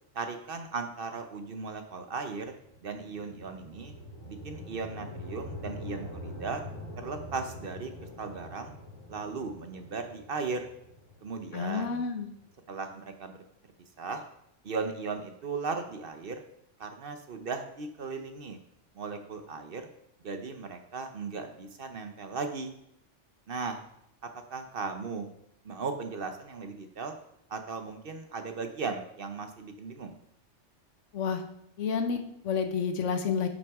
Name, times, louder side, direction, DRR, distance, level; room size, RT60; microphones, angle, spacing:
voice 1, 0.1-2.5 2.8-3.9 4.3-6.6 7.0-7.9 8.2-8.7 9.1-10.7 11.2-12.0 12.7-13.4 14.0-14.2 14.6-16.4 16.8-18.6 19.0-19.9 20.2-22.8 23.5-23.8 24.5-25.3 25.6-27.1 27.5-30.2, right 4 dB, 55° right, 6 dB, 0.9 m, -37 dB
sound 1, 2.2-12.5, left 1 dB, 50° left, 1.6 m, -44 dB
voice 2, 11.5-12.3 31.1-31.4 31.8-33.5, left 6 dB, 75° left, 7 dB, 1.2 m, -30 dB
9.5 x 6.0 x 3.6 m, 0.75 s
omnidirectional pair, 1.3 m